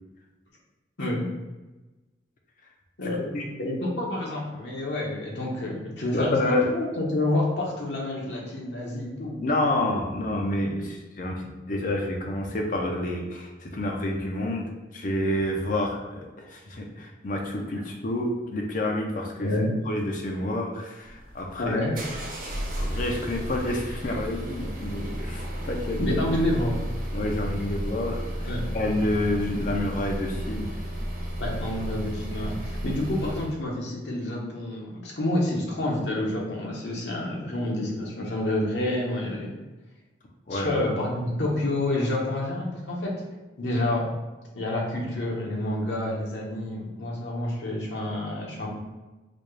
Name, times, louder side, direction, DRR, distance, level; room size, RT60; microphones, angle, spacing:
voice 1, 1.0-1.3 3.0-3.2 3.6-9.4 19.4-19.7 21.6-22.0 26.0-26.7 28.4-28.7 31.4-39.5 40.5-43.2 43.6-44.1 44.5-48.7, left 1 dB, 65° left, -2 dB, 0.9 m, -28 dB
voice 2, 3.0-3.5 6.1-6.7 9.4-19.5 19.9-21.8 22.8-26.2 27.1-30.7 40.5-40.7, left 1 dB, 45° left, 1 dB, 0.6 m, -29 dB
sound 1, 21.0-33.5, equal, 45° right, 0.7 m, -33 dB
4.1 x 2.3 x 3.2 m, 1.1 s
head